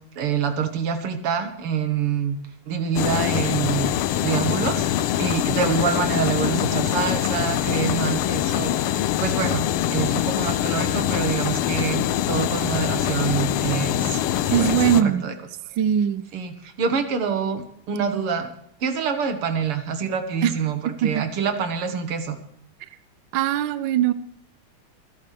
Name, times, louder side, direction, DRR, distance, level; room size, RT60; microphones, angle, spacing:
voice 1, 0.2-2.4 2.7-4.9 5.2-14.2 14.6-15.3 16.3-18.5 18.8-22.4, right 6 dB, 85° right, 8 dB, 2.4 m, -26 dB
sound 1, 2.9-15.0, left 11 dB, 80° left, 1.6 m, -24 dB
voice 2, 14.5-15.3 15.8-16.2 20.4-20.5 21.0-21.2 23.3-24.1, right 10 dB, 65° right, 13 dB, 1.3 m, -20 dB
28.0 x 11.0 x 3.4 m, 0.71 s
omnidirectional pair, 2.4 m